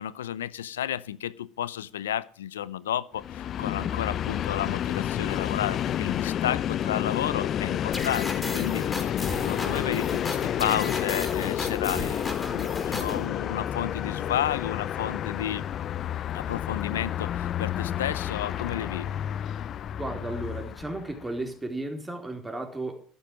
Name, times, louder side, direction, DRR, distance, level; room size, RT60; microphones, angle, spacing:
voice 1, 0.0-9.2 9.4-15.7 16.3-19.1, left 11 dB, 90° left, 0.6 m, -32 dB
Train, 3.2-21.3, left 10 dB, 50° left, 0.6 m, -30 dB
sound 1, 7.9-13.3, left 2 dB, 20° left, 4.7 m, -35 dB
voice 2, 20.0-23.0, right 2 dB, 10° right, 3.9 m, -34 dB
12.5 x 9.6 x 7.5 m
hypercardioid pair, 75°, 0 cm